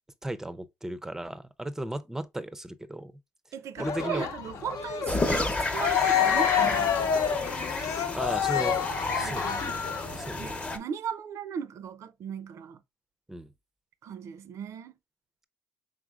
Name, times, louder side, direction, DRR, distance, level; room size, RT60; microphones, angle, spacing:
voice 1, 0.2-3.1 3.8-4.3 8.1-8.8 9.1-9.6 10.1-10.5 13.3-13.5, right 1 dB, 10° right, 0.5 m, -35 dB
voice 2, 3.5-7.0 9.2-9.8 10.4-12.8 14.0-14.9, right 7 dB, 60° right, 0.5 m, -37 dB
Cheering, 3.8-10.2, left 9 dB, 70° left, 0.8 m, -28 dB
sound 1, 5.1-10.8, left 2 dB, 25° left, 0.8 m, -31 dB
4.9 x 3.8 x 2.4 m
cardioid pair, 100°, 6 cm